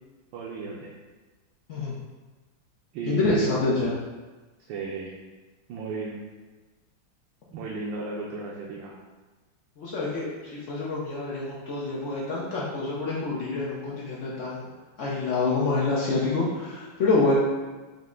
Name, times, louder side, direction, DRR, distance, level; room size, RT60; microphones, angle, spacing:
voice 1, 0.3-0.9 2.9-3.5 4.7-5.2 5.7-6.1 7.5-8.9, right 4 dB, 80° right, -3 dB, 1.3 m, -34 dB
voice 2, 3.1-4.0 9.8-14.6 15.0-17.4, left 3 dB, 85° left, -6 dB, 0.6 m, -26 dB
5.5 x 2.0 x 3.6 m, 1.2 s
omnidirectional pair, 2.1 m